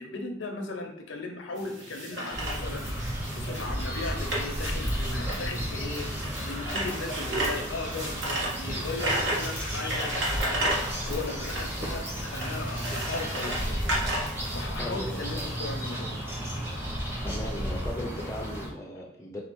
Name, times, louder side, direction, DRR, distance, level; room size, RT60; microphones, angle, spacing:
voice 1, 0.0-13.8 14.5-16.2, left 3 dB, 70° left, 3 dB, 0.7 m, -37 dB
sound 1, 1.6-16.0, right 1 dB, 65° right, 1.4 m, -34 dB
sound 2, 2.3-18.7, equal, 10° right, 1.0 m, -33 dB
voice 2, 14.8-15.5 17.2-19.4, left 1 dB, 15° left, -2 dB, 0.5 m, -38 dB
4.3 x 2.4 x 4.5 m, 0.71 s
head